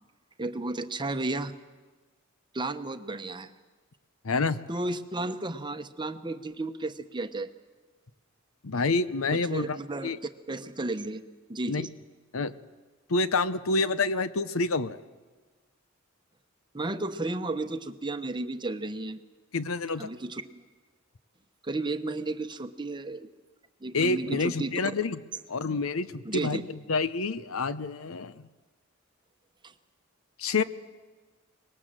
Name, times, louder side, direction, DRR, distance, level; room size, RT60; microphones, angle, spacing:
voice 1, 0.4-1.5 2.5-3.5 4.7-7.5 9.3-10.1 10.5-11.2 11.5-11.9 16.7-19.2 20.0-20.6 21.6-23.3 23.8-24.7 26.2-26.6 29.6-29.7, right 2 dB, 20° right, 9 dB, 1.0 m, -33 dB
voice 2, 4.2-4.6 8.6-9.8 10.0-10.2 11.7-11.9 12.3-12.5 13.1-15.0 19.5-20.1 23.9-25.2 25.5-26.6 26.9-28.5 30.4-30.6, left 3 dB, 80° left, 14 dB, 0.8 m, -28 dB
25.0 x 20.5 x 7.6 m, 1.3 s
head